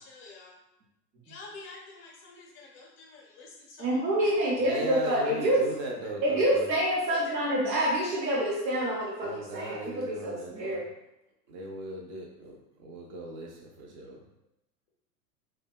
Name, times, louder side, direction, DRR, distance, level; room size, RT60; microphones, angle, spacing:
voice 1, 0.0-0.6 1.2-4.5 7.1-7.2, left 3 dB, 25° left, -2 dB, 0.6 m, -48 dB
voice 2, 3.8-5.6 6.2-10.8, right 1 dB, 85° right, -4 dB, 0.8 m, -27 dB
voice 3, 4.6-6.7 9.2-10.8 11.5-14.3, right 1 dB, 30° right, 0 dB, 0.4 m, -38 dB
2.7 x 2.2 x 2.2 m, 0.87 s
figure-of-eight pair, 95°, 49 cm